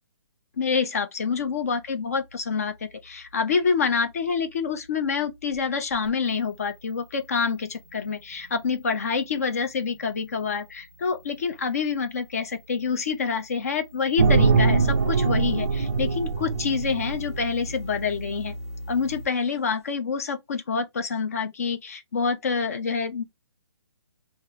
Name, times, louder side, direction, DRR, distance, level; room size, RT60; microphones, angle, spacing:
voice 1, 0.6-18.5 18.9-23.2, left 5 dB, 35° left, 0.5 m, -27 dB
sound 1, 1.4-19.2, equal, 10° left, 1.6 m, -43 dB
sound 2, 14.2-17.5, right 4 dB, 30° right, 0.3 m, -22 dB
2.9 x 2.5 x 3.6 m
hypercardioid pair, 175°, 14 cm